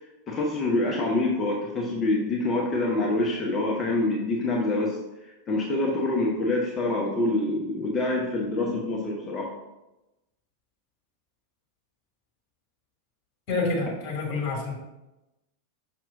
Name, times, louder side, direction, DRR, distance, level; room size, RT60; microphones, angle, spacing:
voice 1, 0.3-5.0 5.5-9.5, left 2 dB, 20° left, -1 dB, 0.9 m, -26 dB
voice 2, 13.5-14.7, left 3 dB, 40° left, -2 dB, 2.2 m, -28 dB
6.0 x 5.8 x 2.7 m, 0.97 s
figure-of-eight pair, 90°, 0 cm